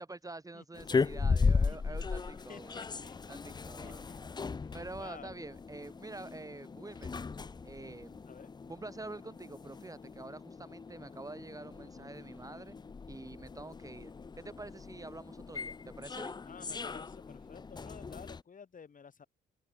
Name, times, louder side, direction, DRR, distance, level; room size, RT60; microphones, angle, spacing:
voice 1, 0.0-2.8 3.3-4.0 4.7-7.1 7.6-8.2 8.7-12.7 13.1-14.1 14.4-16.4, right 2 dB, 15° right, 1.6 m, -46 dB
voice 2, 0.5-0.9 1.7-3.2 3.5-4.2 4.6-5.4 8.3-8.5 16.4-19.3, left 6 dB, 40° left, 3.6 m, -53 dB
sound 1, 0.7-18.4, left 4 dB, 20° left, 0.5 m, -37 dB
cardioid pair, 90°, 20 cm